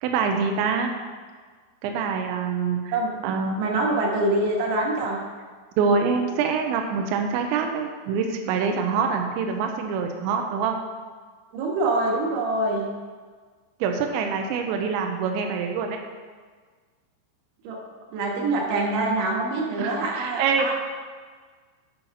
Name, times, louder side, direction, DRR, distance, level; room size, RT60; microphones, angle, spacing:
voice 1, 0.0-0.9 1.8-3.0 3.2-3.6 5.8-10.8 13.8-16.0 19.8-20.7, right 5 dB, 85° right, 3 dB, 2.6 m, -25 dB
voice 2, 3.6-5.2 11.5-12.8 17.6-17.8 18.1-20.7, right 2 dB, 70° right, -1 dB, 3.5 m, -25 dB
8.3 x 5.5 x 5.6 m, 1.5 s
omnidirectional pair, 5.8 m